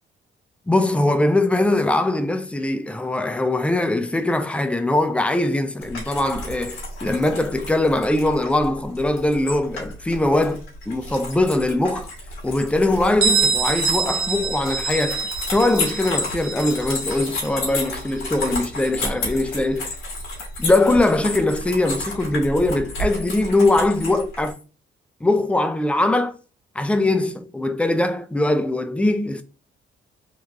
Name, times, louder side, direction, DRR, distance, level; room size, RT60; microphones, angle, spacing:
voice 1, 0.7-12.1 12.4-19.9 20.6-24.6 25.2-26.4 26.8-29.4, left 2 dB, 5° left, 0.3 m, -21 dB
sound 1, 5.8-24.5, left 2 dB, 85° left, 1.3 m, -32 dB
Bell, 13.2-18.7, right 5 dB, 75° right, 0.8 m, -26 dB
3.1 x 2.3 x 2.5 m
cardioid pair, 90°, 20 cm